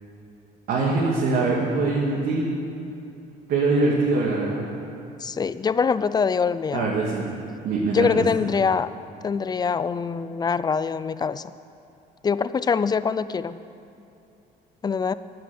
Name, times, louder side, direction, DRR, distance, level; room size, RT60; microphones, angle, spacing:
voice 1, 0.7-2.5 3.5-4.7 6.7-7.3 7.6-8.2, right 3 dB, 70° right, -3 dB, 2.2 m, -23 dB
voice 2, 5.2-6.9 7.9-8.9 9.2-11.5 12.2-13.6 14.8-15.1, left 5 dB, 25° left, 15 dB, 0.5 m, -24 dB
12.0 x 10.5 x 7.8 m, 2.7 s
cardioid pair, 110°, 17 cm